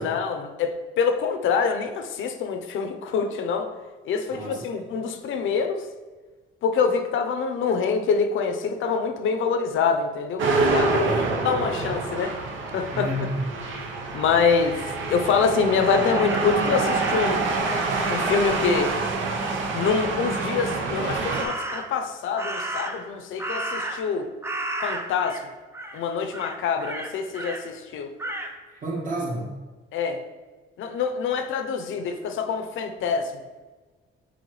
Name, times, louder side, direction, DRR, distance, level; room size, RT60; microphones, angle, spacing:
voice 1, 0.0-3.7 4.0-5.8 6.6-11.1 11.4-12.4 12.7-13.1 14.1-14.8 15.1-17.5 18.1-18.9 19.7-24.3 24.8-25.4 25.9-28.1 29.9-30.2 30.8-33.3, left 5 dB, 65° left, 6 dB, 0.7 m, -25 dB
voice 2, 4.3-4.8 11.0-11.4 12.9-13.4 28.7-29.5, right 1 dB, 40° right, -3 dB, 1.6 m, -30 dB
sound 1, 10.4-21.4, right 3 dB, 65° right, 0.8 m, -26 dB
Crow, 15.8-17.5 21.3-22.0 22.4-24.2 24.4-25.4 25.7-26.0 26.3-27.6 28.2-28.5, right 1 dB, 10° right, 0.5 m, -33 dB
7.0 x 4.4 x 3.1 m, 1.3 s
cardioid pair, 145°, 21 cm